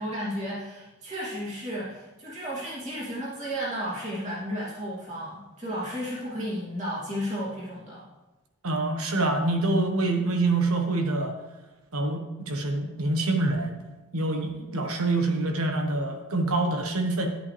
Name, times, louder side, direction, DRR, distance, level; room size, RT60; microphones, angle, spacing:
voice 1, 0.0-8.0, equal, 30° right, -8 dB, 2.9 m, -33 dB
voice 2, 8.6-11.3 11.9-13.8 14.1-17.3, right 2 dB, 75° right, 4 dB, 1.3 m, -26 dB
11.5 x 8.2 x 3.4 m, 1.1 s
head